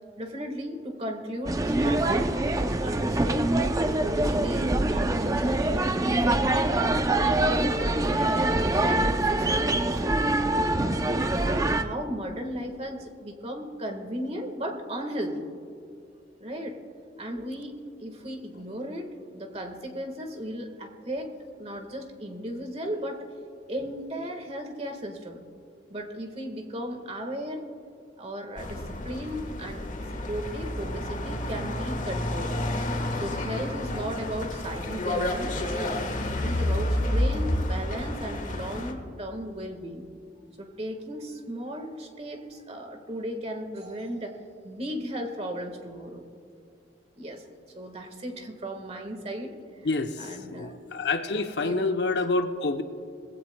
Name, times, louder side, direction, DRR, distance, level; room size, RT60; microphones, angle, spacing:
voice 1, 0.2-3.5 4.0-6.9 7.4-10.2 11.0-15.5 16.4-16.8 17.2-21.3 21.6-23.3 23.7-25.4 25.9-27.6 28.2-32.5 33.1-35.9 36.3-40.1 40.6-46.2 47.2-47.4 47.7-49.6 50.2-50.7 51.3-51.9, equal, 35° right, 4 dB, 1.5 m, -35 dB
sound 1, 1.5-11.8, right 2 dB, 20° right, 0.4 m, -24 dB
sound 2, 28.6-38.9, left 1 dB, 45° left, 1.3 m, -30 dB
voice 2, 49.8-52.8, left 3 dB, 65° left, 7 dB, 0.8 m, -28 dB
20.0 x 16.0 x 2.2 m, 2.5 s
head